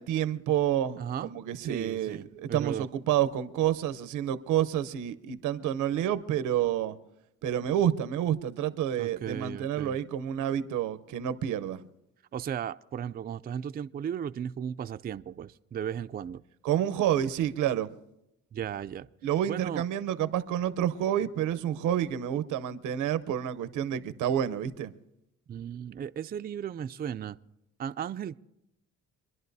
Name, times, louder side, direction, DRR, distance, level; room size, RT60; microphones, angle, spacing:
voice 1, 0.0-7.0 7.4-11.8 16.6-17.9 19.2-24.9, right 10 dB, 90° right, 0.8 m, -29 dB
voice 2, 1.0-1.3 1.6-2.9 9.0-10.0 12.3-16.4 18.5-19.1 19.5-19.8 25.5-27.4 27.8-28.3, right 9 dB, 30° right, 0.4 m, -36 dB
25.5 x 11.0 x 2.7 m
cardioid pair, 90°, 30 cm